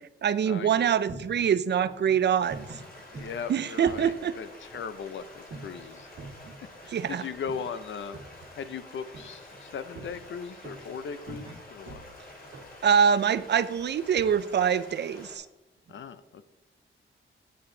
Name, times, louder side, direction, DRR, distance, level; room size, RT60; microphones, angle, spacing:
voice 1, 0.2-2.6 3.5-4.3 6.9-7.2 12.8-15.4, right 8 dB, 55° right, 15 dB, 0.5 m, -24 dB
sound 1, 0.7-14.1, right 3 dB, 80° right, 2.1 m, -48 dB
Stream, 2.4-15.3, left 1 dB, 45° left, 2.3 m, -48 dB
voice 2, 3.1-6.1 6.8-8.2 8.6-12.0 15.9-16.4, left 6 dB, 65° left, 12 dB, 0.6 m, -38 dB
9.6 x 8.7 x 3.8 m, 0.96 s
wide cardioid pair, 160°, 21 cm